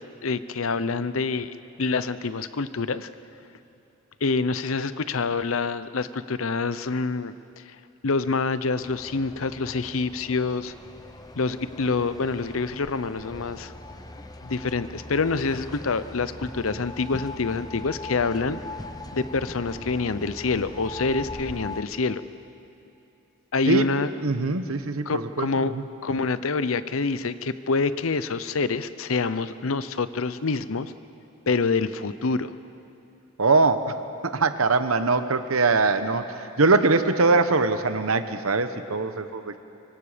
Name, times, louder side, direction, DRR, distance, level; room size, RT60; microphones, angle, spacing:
voice 1, 0.0-3.1 4.2-7.3 8.0-10.7 11.3-13.7 14.4-18.6 19.1-22.2 23.5-24.1 25.1-25.7 26.0-30.9 31.5-32.5, left 4 dB, 70° left, 14 dB, 0.7 m, -26 dB
sound 1, 8.8-21.8, left 2 dB, 20° left, 0.9 m, -40 dB
voice 2, 24.2-25.8 33.4-39.6, right 3 dB, 75° right, 10 dB, 1.1 m, -22 dB
24.5 x 24.5 x 5.1 m, 2.8 s
head